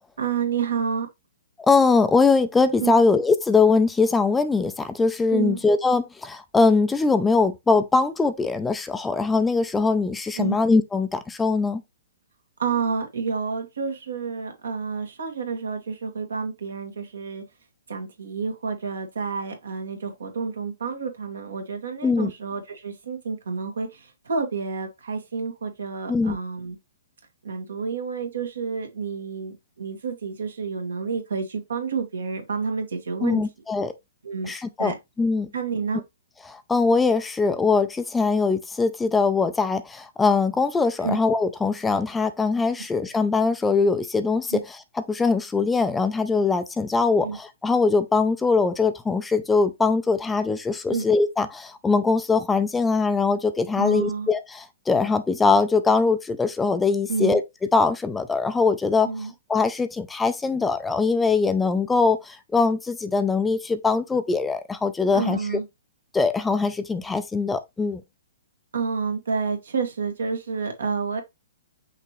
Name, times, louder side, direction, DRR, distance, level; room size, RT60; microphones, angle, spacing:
voice 1, 0.2-1.1 2.8-2.9 5.3-5.6 10.4-10.5 12.6-17.4 17.9-26.8 27.4-33.4 34.2-34.5 34.8-35.0 35.5-36.0 41.0-41.2 44.5-44.6 47.2-47.4 50.9-51.0 53.8-54.3 57.1-57.4 59.0-59.3 65.1-65.7 68.7-71.2, right 5 dB, 80° right, 1.7 m, -29 dB
voice 2, 1.7-11.8 22.0-22.3 26.1-26.4 33.2-33.9 34.5-34.9 35.2-35.5 36.5-44.8 45.1-57.4 57.7-59.1 59.5-65.6 66.1-68.0, left 4 dB, 10° left, 0.4 m, -22 dB
5.8 x 2.9 x 3.1 m
hypercardioid pair, 135°, 0 cm